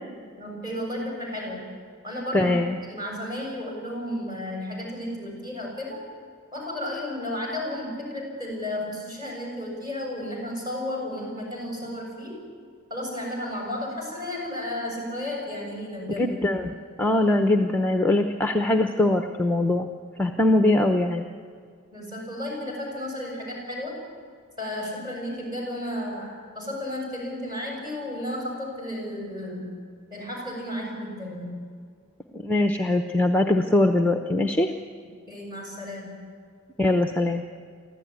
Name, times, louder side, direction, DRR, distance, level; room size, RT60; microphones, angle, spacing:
voice 1, 0.4-1.7 2.0-2.6 2.9-6.1 6.5-12.4 12.9-16.3 20.3-20.4 21.9-24.0 24.6-29.8 30.1-31.6 35.3-36.2, left 1 dB, 20° right, -1 dB, 7.0 m, -33 dB
voice 2, 2.3-2.8 16.2-19.9 20.2-21.3 32.3-34.7 36.8-37.4, left 1 dB, 5° left, 5 dB, 0.8 m, -22 dB
24.0 x 15.0 x 9.6 m, 2.1 s
head